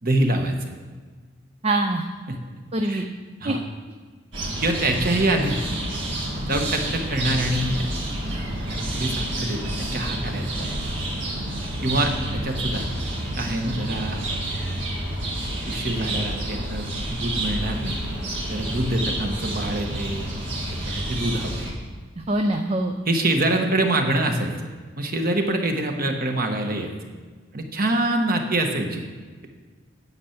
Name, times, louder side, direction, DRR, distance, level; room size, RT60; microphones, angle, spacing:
voice 1, 0.0-0.7 2.3-2.4 2.8-3.0 3.4-3.6 4.6-5.6 6.4-7.9 8.3-10.8 11.8-12.9 13.4-14.4 15.6-18.0 18.5-20.3 20.8-21.5 23.1-24.5 25.0-26.9 27.5-29.0, right 1 dB, 45° right, 4 dB, 1.3 m, -25 dB
voice 2, 1.6-2.0 2.7-3.1 3.4-3.5 22.2-22.9, right 2 dB, 30° right, 4 dB, 0.5 m, -23 dB
sound 1, 4.3-21.7, right 1 dB, 65° right, 2.1 m, -29 dB
9.7 x 5.8 x 8.0 m, 1.5 s
head